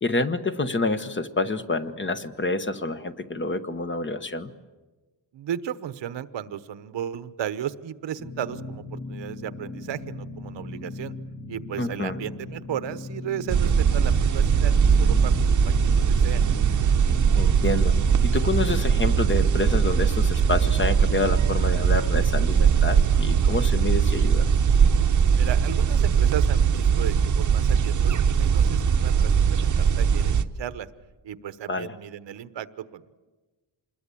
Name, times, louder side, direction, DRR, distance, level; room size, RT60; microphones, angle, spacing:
voice 1, 0.0-4.5 11.8-12.2 17.4-18.0 18.2-24.5 31.7-31.9, left 3 dB, 25° left, 10 dB, 1.0 m, -28 dB
voice 2, 5.3-11.1 11.5-15.3 15.6-16.4 25.4-30.9 31.2-33.2, right 10 dB, 75° right, 13 dB, 1.1 m, -35 dB
sound 1, 8.2-19.3, left 2 dB, 45° left, 1.6 m, -38 dB
sound 2, 13.5-30.4, right 7 dB, 45° right, 0.9 m, -20 dB
27.0 x 21.0 x 8.5 m, 1.2 s
wide cardioid pair, 160°, 43 cm